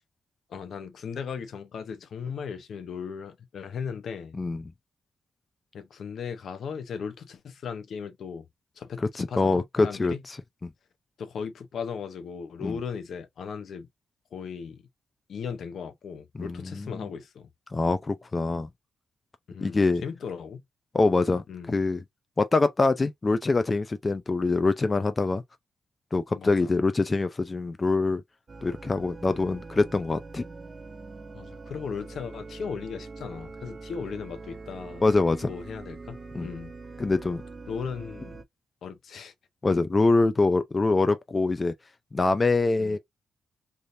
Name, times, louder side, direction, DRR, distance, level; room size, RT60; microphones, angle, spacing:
voice 1, 0.5-4.4 5.7-8.5 8.8-10.2 11.2-13.9 14.3-14.8 15.3-17.5 19.5-20.6 21.5-21.7 26.3-26.7 31.3-35.0 35.5-36.7 37.7-38.4 38.8-39.3 42.8-43.0, left 6 dB, 65° left, 0.7 m, -37 dB
voice 2, 9.2-10.1 10.6-10.7 12.6-12.7 16.4-17.1 17.7-18.7 19.6-20.0 20.9-22.0 22.4-25.4 26.1-28.2 28.6-30.4 35.0-35.5 36.3-36.5 37.0-37.4 39.6-41.7 42.1-43.0, left 3 dB, 25° left, 0.5 m, -24 dB
sound 1, 28.5-38.4, right 3 dB, 35° right, 0.5 m, -43 dB
3.4 x 2.6 x 2.6 m
cardioid pair, 105°, 0 cm